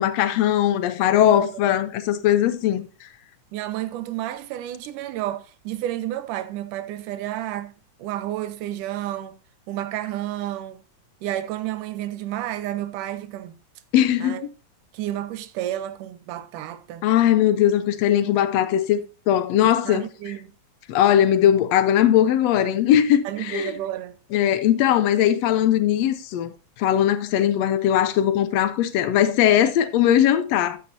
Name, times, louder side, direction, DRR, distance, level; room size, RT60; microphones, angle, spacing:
voice 1, 0.0-2.9 13.9-14.5 17.0-19.0 19.3-20.0 20.9-23.7 24.3-26.5 26.8-30.8, left 10 dB, 75° left, 1.6 m, -19 dB
voice 2, 1.3-1.6 3.5-7.7 8.0-9.4 9.7-10.8 11.2-13.5 14.2-14.5 14.9-17.0 19.9-20.5 23.2-24.1, right 13 dB, 85° right, 2.4 m, -31 dB
13.5 x 8.5 x 2.7 m
omnidirectional pair, 3.6 m